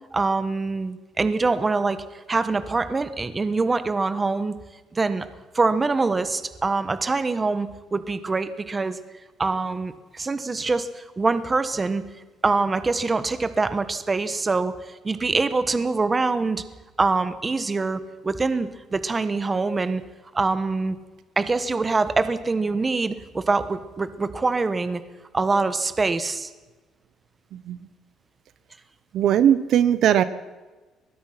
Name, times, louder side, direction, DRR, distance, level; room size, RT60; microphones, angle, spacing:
voice 1, 0.1-4.5 4.9-5.3 5.5-9.0 9.4-12.0 12.4-14.7 15.0-16.6 17.0-20.0 20.3-21.0 21.4-25.0 25.3-26.5, right 3 dB, 20° right, 12 dB, 1.2 m, -24 dB
voice 2, 29.1-30.2, right 10 dB, 60° right, 14 dB, 1.1 m, -19 dB
23.5 x 19.5 x 6.0 m, 1.2 s
cardioid pair, 145°, 0 cm